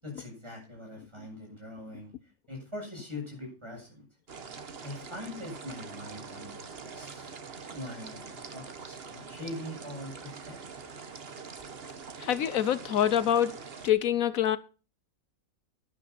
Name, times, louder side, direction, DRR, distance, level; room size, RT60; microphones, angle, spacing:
voice 1, 0.0-2.1 2.5-4.1 4.8-7.3 7.7-10.6, left 1 dB, 20° right, 7.8 m, -42 dB
sound 1, 4.3-13.9, right 5 dB, 45° right, 1.4 m, -44 dB
voice 2, 12.2-13.5 13.8-14.6, left 10 dB, 80° left, 1.2 m, -25 dB
12.0 x 11.0 x 4.2 m
omnidirectional pair, 1.5 m